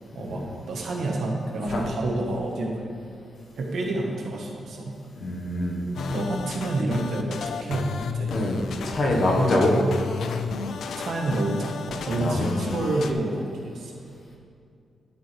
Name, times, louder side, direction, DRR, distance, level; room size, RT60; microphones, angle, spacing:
voice 1, 0.1-2.9 3.5-5.0 6.1-7.9 8.1-8.3 11.0-13.9, right 2 dB, 75° right, 0 dB, 1.4 m, -29 dB
voice 2, 5.2-5.8 8.3-8.6 8.8-9.8 12.2-12.5, left 1 dB, 60° left, -1 dB, 1.4 m, -24 dB
sound 1, 6.0-13.1, left 5 dB, 80° left, 0.4 m, -32 dB
11.0 x 6.7 x 3.4 m, 2.4 s
cardioid pair, 110°, 0 cm